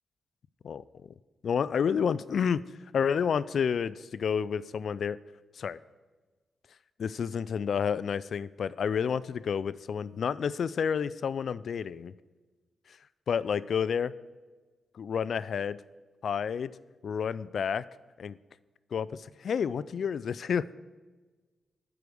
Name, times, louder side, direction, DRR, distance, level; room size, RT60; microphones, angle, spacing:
voice 1, 0.6-1.1 1.4-2.6 2.9-5.2 5.6-5.8 7.0-12.1 13.3-14.1 14.9-15.8 16.2-16.7 17.0-17.8 18.2-18.4 18.9-20.6, left 7 dB, 70° left, 18 dB, 0.3 m, -30 dB
12.0 x 4.8 x 6.3 m, 1.3 s
cardioid pair, 60°, 0 cm